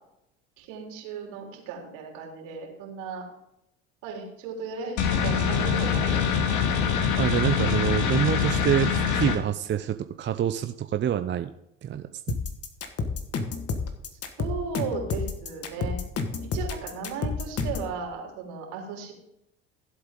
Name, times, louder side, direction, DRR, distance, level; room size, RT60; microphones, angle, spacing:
voice 1, 0.6-3.3 4.0-6.4 14.1-16.0 16.4-19.1, right 5 dB, 65° right, 0 dB, 4.0 m, -36 dB
sound 1, 5.0-9.4, left 7 dB, 60° left, 2.3 m, -24 dB
voice 2, 7.2-11.5 11.8-12.4, right 10 dB, 35° right, 9 dB, 0.6 m, -26 dB
sound 2, 12.3-17.9, left 4 dB, 45° left, 1.8 m, -30 dB
15.5 x 8.0 x 3.8 m, 0.82 s
hypercardioid pair, 75°, 34 cm